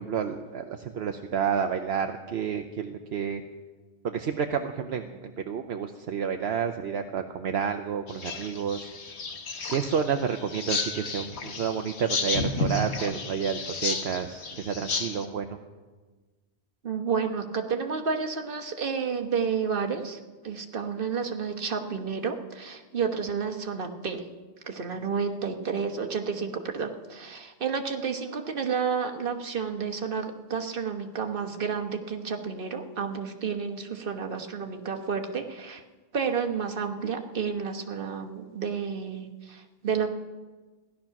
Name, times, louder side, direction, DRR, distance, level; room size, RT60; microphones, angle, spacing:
voice 1, 0.0-3.4 4.0-8.9 9.7-15.6, right 7 dB, 75° right, 5 dB, 1.0 m, -30 dB
sound 1, 8.1-15.2, left 3 dB, 85° left, 1.4 m, -32 dB
voice 2, 16.8-20.2 20.4-24.2 24.7-35.8 36.1-40.1, right 6 dB, 55° right, 4 dB, 1.4 m, -31 dB
16.0 x 11.5 x 5.9 m, 1.3 s
omnidirectional pair, 1.1 m